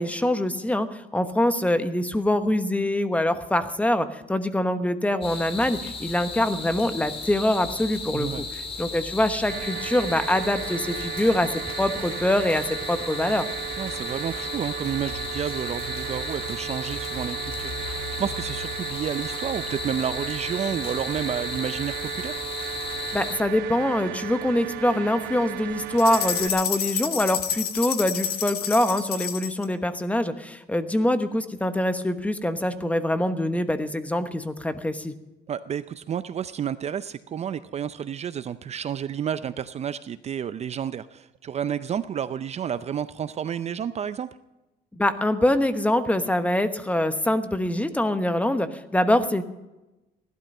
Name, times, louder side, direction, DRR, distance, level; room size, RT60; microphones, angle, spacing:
voice 1, 0.0-8.4 8.8-11.5 11.8-13.5 23.1-35.1 44.9-49.4, left 1 dB, 10° left, 10 dB, 1.1 m, -24 dB
sound 1, 5.2-23.4, left 4 dB, 35° left, 3.0 m, -35 dB
voice 2, 8.1-8.5 13.8-22.4 35.5-44.3, right 8 dB, 40° right, 14 dB, 0.5 m, -30 dB
sound 2, 9.5-26.5, right 12 dB, 80° right, 0.7 m, -35 dB
sound 3, 26.0-29.6, left 9 dB, 70° left, 1.5 m, -29 dB
17.5 x 12.0 x 5.5 m, 1.0 s
cardioid pair, 110°, 17 cm